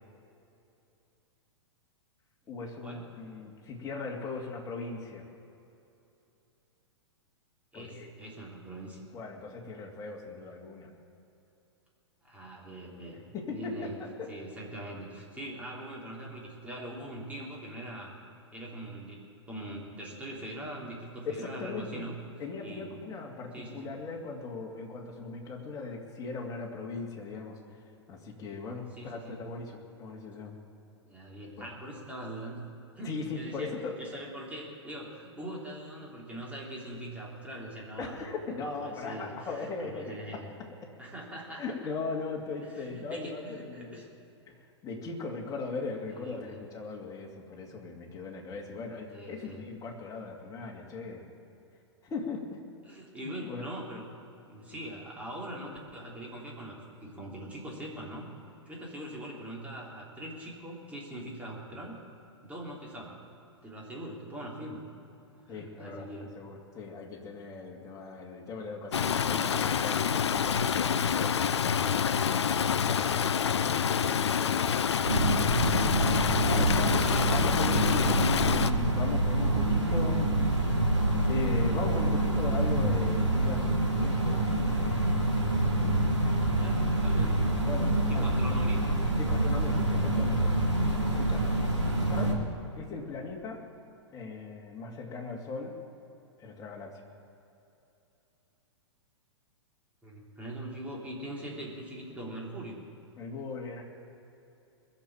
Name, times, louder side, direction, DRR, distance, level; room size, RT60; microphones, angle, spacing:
voice 1, 2.5-5.2 7.7-8.1 9.1-10.9 13.3-14.3 21.2-22.1 22.4-27.8 28.1-30.5 31.6-31.7 33.0-34.0 38.0-40.4 41.6-44.1 44.5-44.6 44.8-51.3 52.0-52.6 53.2-53.7 65.5-73.2 75.7-75.9 76.5-77.0 77.3-80.8 81.3-83.8 84.0-84.5 87.6-88.4 89.2-90.5 91.0-91.5 92.1-92.4 92.8-93.7 94.1-95.8 96.4-97.0 103.2-103.8, left 4 dB, 25° left, -1 dB, 2.5 m, -39 dB
voice 2, 7.7-9.0 12.2-13.2 13.5-14.0 14.3-18.1 18.5-22.2 22.6-23.0 23.5-23.9 29.0-29.4 31.1-32.6 33.0-33.7 34.0-38.3 38.8-40.5 41.0-41.6 42.7-44.0 46.2-46.6 49.1-49.6 52.8-54.1 54.5-56.7 57.0-58.3 58.6-62.0 62.4-63.2 63.6-64.8 65.4-66.4 74.8-76.1 76.5-78.3 86.6-87.8 88.1-88.9 91.8-92.1 100.0-102.8, right 1 dB, 10° right, -3 dB, 3.4 m, -42 dB
Stream, 68.9-78.7, left 7 dB, 70° left, 0.6 m, -27 dB
sound 1, 75.0-92.3, right 1 dB, 90° right, 2.8 m, -26 dB
21.5 x 7.4 x 8.8 m, 2.9 s
figure-of-eight pair, 105°, 15 cm